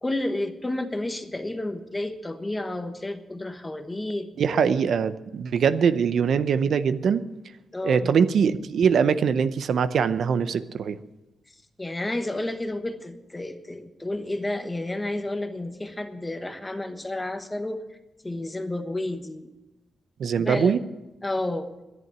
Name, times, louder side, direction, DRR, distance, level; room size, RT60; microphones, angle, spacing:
voice 1, 0.0-4.6 7.7-8.1 11.8-17.8 18.2-19.5 20.4-20.8 21.2-21.7, left 1 dB, 15° left, 7 dB, 1.2 m, -31 dB
voice 2, 4.4-7.2 7.8-11.0 20.2-20.8, right 6 dB, 70° right, 12 dB, 0.6 m, -22 dB
11.0 x 11.0 x 8.8 m, 1.0 s
wide cardioid pair, 130°, 0 cm